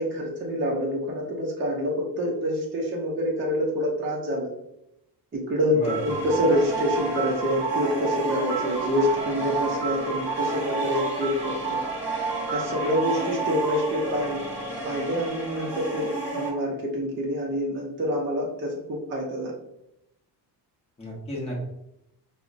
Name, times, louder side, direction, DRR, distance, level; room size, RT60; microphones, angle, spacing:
voice 1, 0.0-4.5 5.3-11.8 12.5-14.4 14.8-19.5, equal, 30° right, -2 dB, 0.5 m, -27 dB
voice 2, 5.7-6.2 21.0-21.6, equal, 15° left, -4 dB, 0.7 m, -32 dB
sound 1, 5.8-16.5, right 3 dB, 5° right, 1.1 m, -30 dB
4.8 x 2.1 x 2.4 m, 0.82 s
cardioid pair, 175°, 42 cm